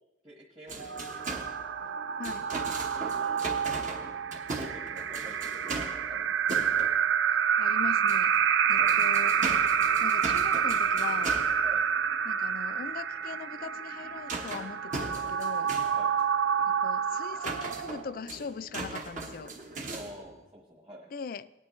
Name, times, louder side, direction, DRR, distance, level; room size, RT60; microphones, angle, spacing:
voice 1, 0.2-1.2 2.9-4.1 4.5-6.4 8.8-9.0 11.6-11.8 15.9-16.1 19.9-21.1, equal, 25° right, -3 dB, 1.3 m, -48 dB
sound 1, 0.7-7.7 8.0-20.4, right 3 dB, 45° right, 1.2 m, -40 dB
sound 2, 0.8-18.2, right 7 dB, 90° right, 0.4 m, -28 dB
voice 2, 7.6-8.3 8.7-9.5 10.0-11.4 12.2-15.7 16.7-19.5 21.1-21.6, left 5 dB, 50° left, 15 dB, 0.3 m, -40 dB
18.0 x 9.5 x 3.1 m, 1.0 s
head